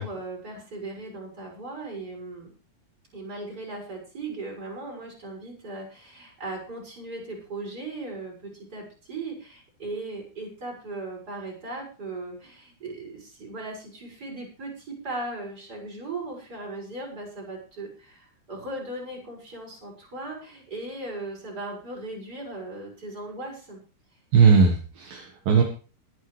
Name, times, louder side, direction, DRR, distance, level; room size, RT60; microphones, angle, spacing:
voice 1, 0.0-2.5 3.1-23.8, right 2 dB, 20° right, -1 dB, 7.1 m, -37 dB
voice 2, 24.3-25.6, right 5 dB, 65° right, 2 dB, 3.2 m, -18 dB
22.5 x 10.5 x 3.4 m, 0.37 s
omnidirectional pair, 4.6 m